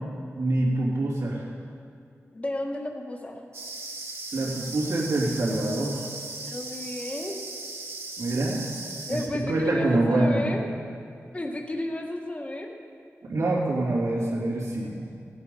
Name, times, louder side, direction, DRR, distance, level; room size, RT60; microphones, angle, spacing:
voice 1, 0.4-1.4 4.3-6.0 8.2-8.7 9.1-9.2 9.5-10.6 13.3-15.1, right 2 dB, 85° right, -6 dB, 3.1 m, -25 dB
voice 2, 2.3-3.4 6.5-7.4 9.1-10.6 11.3-12.7, left 1 dB, 25° left, 2 dB, 1.5 m, -32 dB
sound 1, 3.5-9.3, right 3 dB, 60° right, 1.7 m, -38 dB
15.5 x 9.4 x 5.5 m, 2.3 s
wide cardioid pair, 90°, 5 cm